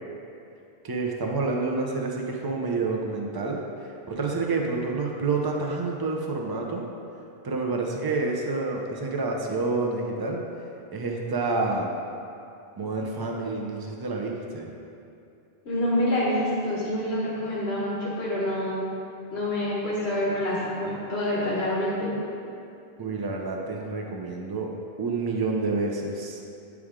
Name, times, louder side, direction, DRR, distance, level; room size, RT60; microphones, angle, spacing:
voice 1, 0.8-3.6 4.1-6.8 7.4-10.4 10.9-11.9 12.8-14.7 23.0-24.7 25.0-26.4, right 3 dB, 25° right, 0 dB, 0.6 m, -28 dB
voice 2, 15.6-18.9 19.3-22.1, left 1 dB, 85° left, -6 dB, 1.4 m, -27 dB
8.6 x 4.8 x 3.7 m, 2.6 s
omnidirectional pair, 1.0 m